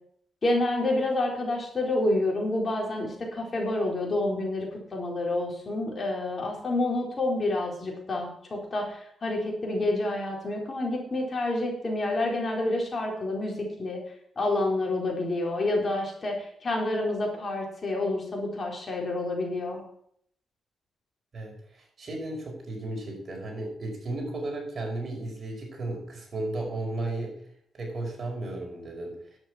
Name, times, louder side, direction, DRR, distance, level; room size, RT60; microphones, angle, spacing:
voice 1, 0.4-14.0 14.4-19.8, left 2 dB, 40° left, 0 dB, 4.0 m, -28 dB
voice 2, 21.3-27.4 27.7-29.2, right 2 dB, 45° right, 1 dB, 5.1 m, -34 dB
10.5 x 8.5 x 6.0 m, 0.66 s
cardioid pair, 90°, 0 cm